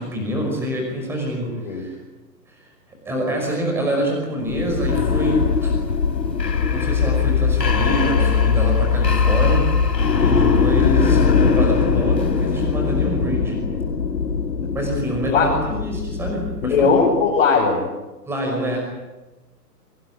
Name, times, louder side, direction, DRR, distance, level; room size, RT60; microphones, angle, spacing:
voice 1, 0.0-2.0 2.5-2.7 3.1-5.7 6.6-13.6 14.7-16.9 18.3-19.0, equal, 5° right, 1 dB, 5.5 m, -26 dB
sound 1, 4.5-17.3, left 5 dB, 80° left, 3.8 m, -20 dB
voice 2, 16.6-17.8, left 5 dB, 35° left, -4 dB, 6.0 m, -18 dB
24.5 x 22.5 x 9.7 m, 1.1 s
hypercardioid pair, 170°, 49 cm